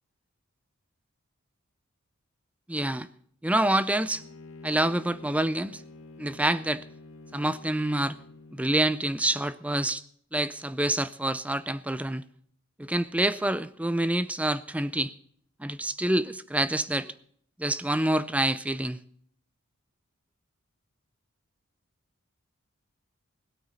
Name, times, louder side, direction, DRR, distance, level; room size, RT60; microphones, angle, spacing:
voice 1, 2.7-3.1 3.4-4.2 4.6-5.8 6.2-6.8 7.3-8.2 8.5-10.0 10.3-12.2 12.8-15.1 15.6-17.1 17.6-19.0, right 1 dB, 5° right, 0.4 m, -27 dB
Bowed string instrument, 4.1-8.9, left 3 dB, 80° left, 1.7 m, -48 dB
17.0 x 13.0 x 4.1 m
head